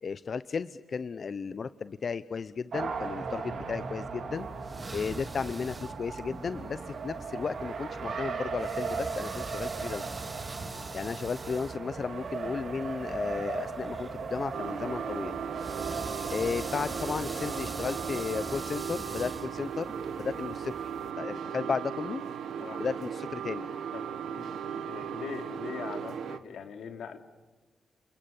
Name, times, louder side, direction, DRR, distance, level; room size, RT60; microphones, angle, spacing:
voice 1, 0.0-4.5 4.9-10.0 10.9-15.4 16.3-20.9 21.2-22.2 22.8-23.7, left 5 dB, 50° left, 14 dB, 0.8 m, -34 dB
Race car auto racing, 2.7-18.6, right 5 dB, 65° right, 4.1 m, -38 dB
sound 1, 4.4-21.1, right 2 dB, 25° right, 2.0 m, -44 dB
voice 2, 10.6-11.1 15.8-16.1 22.6-22.9 23.9-27.2, left 6 dB, 85° left, 6 dB, 3.2 m, -43 dB
sound 2, 14.5-26.4, right 8 dB, 85° right, 1.7 m, -37 dB
29.0 x 28.0 x 7.2 m, 1.3 s
cardioid pair, 100°, 0 cm